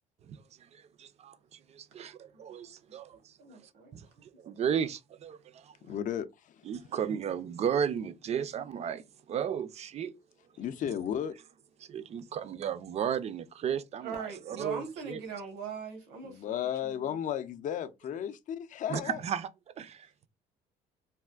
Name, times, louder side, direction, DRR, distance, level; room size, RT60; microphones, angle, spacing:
voice 1, 0.7-3.6 3.9-5.7 6.6-10.1 11.8-15.2 18.9-19.5 19.8-20.1, right 8 dB, 40° right, 0.4 m, -34 dB
voice 2, 3.4-4.0 4.5-4.6 14.0-16.5 16.8-17.2, right 6 dB, 90° right, 1.1 m, -41 dB
voice 3, 5.8-6.7 10.6-11.3 16.2-19.2, left 9 dB, 50° left, 0.5 m, -34 dB
3.4 x 2.4 x 2.3 m
cardioid pair, 110°, 17 cm